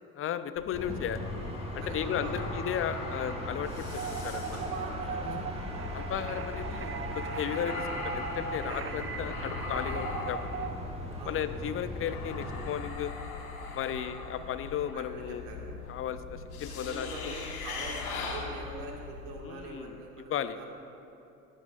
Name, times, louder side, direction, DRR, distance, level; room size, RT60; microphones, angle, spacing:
voice 1, 0.2-1.2 1.7-4.6 5.9-10.7 11.3-13.1 13.7-15.5 15.9-17.4 19.4-20.0 20.3-20.6, left 9 dB, 30° left, 12 dB, 0.6 m, -35 dB
sound 1, 0.5-19.4, left 4 dB, 80° left, 1.6 m, -41 dB
sound 2, 0.7-12.7, equal, 15° right, 1.8 m, -39 dB
voice 2, 1.8-2.5 4.5-5.8 8.6-9.0 11.2-11.4 13.9-14.6 14.9-15.7 16.8-20.7, right 2 dB, 70° right, -1 dB, 2.0 m, -44 dB
sound 3, 3.9-10.7, right 5 dB, 30° right, 0.8 m, -39 dB
18.5 x 10.0 x 2.5 m, 2.8 s
hypercardioid pair, 65°, 44 cm